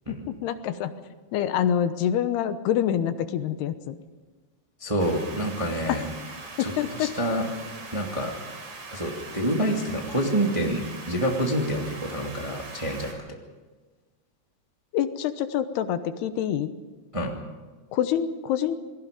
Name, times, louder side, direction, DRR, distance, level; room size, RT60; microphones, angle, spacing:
voice 1, 0.1-0.9 1.3-4.0 5.9-6.0 6.6-7.1 14.9-16.7 17.9-18.8, left 10 dB, 80° left, 11 dB, 3.0 m, -26 dB
voice 2, 4.8-6.1 6.6-7.4 7.9-8.3 8.9-13.2 17.1-17.4, right 1 dB, 15° right, 1 dB, 1.4 m, -27 dB
sound 1, 5.0-13.1, right 3 dB, 50° right, 5.1 m, -41 dB
28.0 x 20.5 x 5.2 m, 1.3 s
omnidirectional pair, 4.7 m